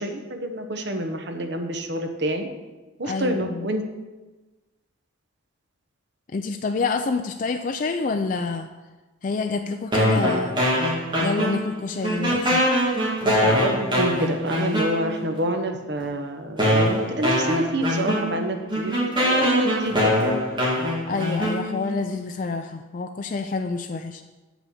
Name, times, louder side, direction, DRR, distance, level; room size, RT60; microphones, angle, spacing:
voice 1, 0.0-2.5 3.0-3.8 10.0-10.3 13.2-20.1, right 1 dB, 55° right, 5 dB, 1.1 m, -27 dB
voice 2, 3.0-3.7 6.3-8.7 9.2-10.6 11.2-12.6 21.1-24.2, left 4 dB, 40° left, 6 dB, 0.4 m, -27 dB
sound 1, 9.9-11.8 12.0-15.3 16.0-16.1 16.6-22.0, equal, 25° right, 2.6 m, -23 dB
7.9 x 6.1 x 7.0 m, 1.2 s
head